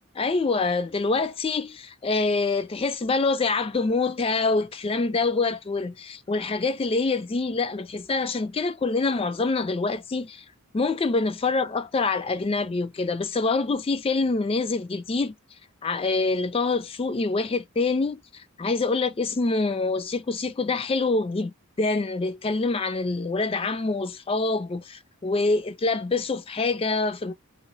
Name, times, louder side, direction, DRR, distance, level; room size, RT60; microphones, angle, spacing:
voice 1, 0.2-10.4 10.7-15.3 15.8-27.3, left 3 dB, 25° left, 0.3 m, -25 dB
3.1 x 2.8 x 3.8 m
head